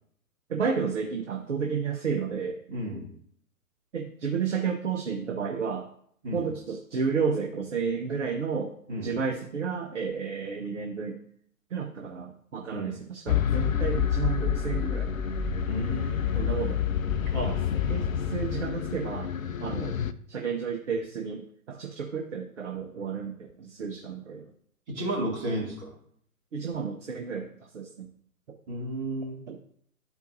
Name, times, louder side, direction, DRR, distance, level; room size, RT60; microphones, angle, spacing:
voice 1, 0.5-2.6 3.9-5.9 6.3-8.8 9.0-11.2 11.7-15.1 16.3-16.8 17.4-19.3 19.6-20.0 20.3-24.4 26.5-28.1 29.5-29.6, right 6 dB, 50° right, 3 dB, 0.7 m, -31 dB
voice 2, 2.7-3.1 6.2-6.5 8.9-9.1 12.7-12.9 15.7-16.3 17.3-17.5 24.9-25.9 28.7-29.4, right 1 dB, 30° right, -5 dB, 2.2 m, -32 dB
sound 1, 13.3-20.1, left 8 dB, 60° left, 0.5 m, -28 dB
11.5 x 4.5 x 2.6 m, 0.64 s
figure-of-eight pair, 130°, 46 cm